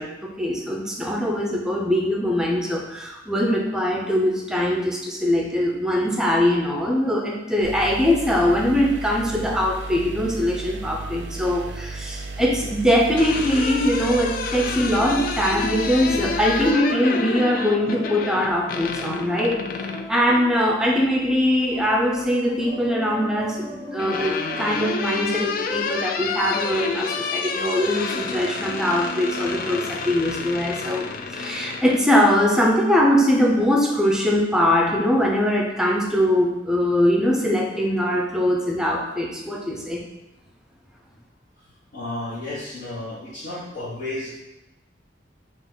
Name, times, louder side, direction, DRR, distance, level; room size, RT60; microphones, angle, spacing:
voice 1, 0.0-19.7 20.1-31.1 31.3-40.0, equal, 5° right, -1 dB, 0.5 m, -22 dB
sound 1, 7.6-16.7, right 3 dB, 85° right, 0.4 m, -34 dB
sound 2, 13.2-20.1 21.6-22.3 23.5-32.0, left 4 dB, 50° left, 0.3 m, -29 dB
sound 3, 15.3-29.9, left 1 dB, 35° left, 0.8 m, -39 dB
voice 2, 41.6-44.4, left 1 dB, 65° left, -12 dB, 1.3 m, -33 dB
3.7 x 3.0 x 3.8 m, 0.93 s
head